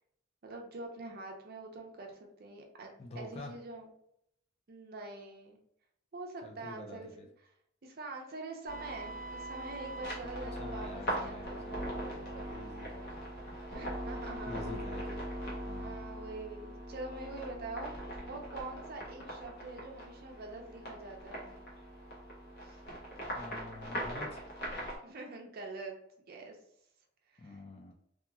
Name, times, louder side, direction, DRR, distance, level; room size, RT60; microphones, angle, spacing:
voice 1, 0.4-3.9 4.7-5.6 6.1-7.1 7.8-11.6 13.7-14.8 15.8-21.6 22.6-22.8 25.0-26.0 26.3-26.6 27.3-27.6, right 2 dB, 50° right, 2 dB, 0.5 m, -45 dB
voice 2, 3.0-3.5 6.4-7.3 10.4-13.3 14.5-15.2 15.6-16.0 23.3-24.5 27.4-27.9, left 2 dB, 35° left, 1 dB, 0.4 m, -47 dB
sound 1, 8.7-25.0, equal, 55° left, 0.9 m, -41 dB
2.8 x 2.4 x 2.4 m, 0.73 s
head